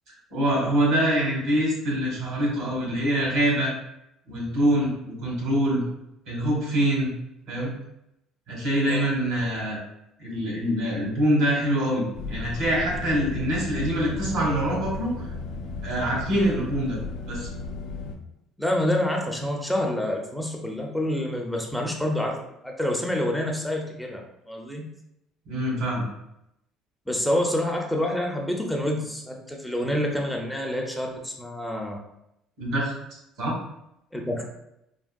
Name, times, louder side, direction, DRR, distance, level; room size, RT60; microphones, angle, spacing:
voice 1, 0.3-3.7 4.3-5.8 6.3-7.1 7.5-7.7 8.5-9.8 10.2-15.3 15.8-17.0 17.2-17.5 25.5-26.0 32.6-32.9 33.4-33.6, equal, 75° right, -4 dB, 1.5 m, -24 dB
sound 1, 12.1-18.2, left 3 dB, 80° left, 0.5 m, -34 dB
voice 2, 18.6-22.4 22.6-24.9 27.1-32.0 34.1-34.5, left 1 dB, 5° left, 0 dB, 0.4 m, -27 dB
3.5 x 2.1 x 2.2 m, 0.83 s
supercardioid pair, 90°, 0 cm